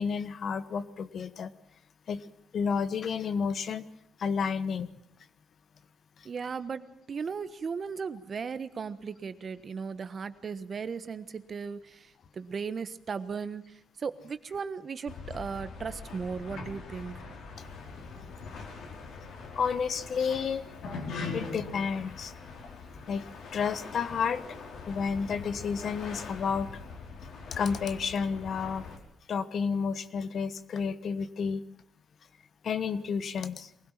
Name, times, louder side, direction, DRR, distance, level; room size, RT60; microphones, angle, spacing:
voice 1, 0.0-1.5 2.1-2.2 2.5-3.9 4.2-4.9 6.2-6.3 19.5-20.7 21.3-22.3 23.1-23.3 23.5-24.6 24.8-26.8 27.5-28.9 29.3-31.6 32.6-33.7, left 6 dB, 55° left, 13 dB, 1.2 m, -31 dB
voice 2, 6.2-17.2, right 5 dB, 45° right, 12 dB, 1.3 m, -37 dB
sound 1, 15.1-29.0, left 4 dB, 70° left, 4.7 m, -42 dB
22.5 x 16.5 x 7.5 m, 0.72 s
cardioid pair, 90°, 0 cm